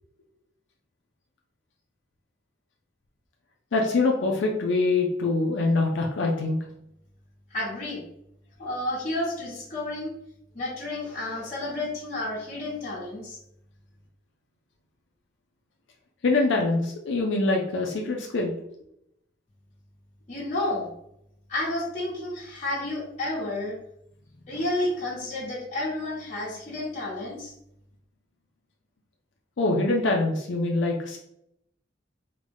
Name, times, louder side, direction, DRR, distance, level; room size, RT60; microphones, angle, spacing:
voice 1, 3.7-6.6 16.2-18.5 29.6-31.2, left 3 dB, 85° left, 0 dB, 0.5 m, -24 dB
voice 2, 7.5-8.0 8.6-10.1 10.5-13.4 20.3-20.9 21.5-23.7 24.5-27.5, left 1 dB, 40° left, -10 dB, 1.3 m, -31 dB
3.8 x 2.2 x 3.4 m, 0.77 s
head